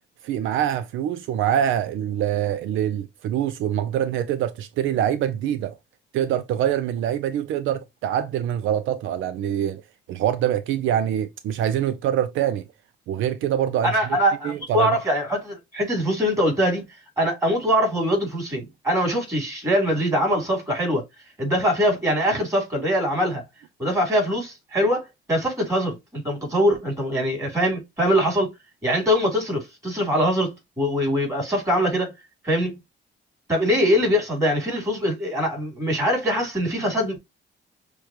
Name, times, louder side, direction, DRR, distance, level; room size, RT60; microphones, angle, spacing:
voice 1, 0.2-5.8 6.1-9.8 10.1-12.6 13.1-13.9 14.4-15.0, right 10 dB, 80° right, 0.4 m, -24 dB
voice 2, 13.8-16.9 17.2-21.0 21.4-23.4 23.8-28.5 28.8-32.1 32.4-32.8 33.5-37.2, equal, 15° right, 3.2 m, -23 dB
6.3 x 2.3 x 2.8 m
cardioid pair, 90°, 20 cm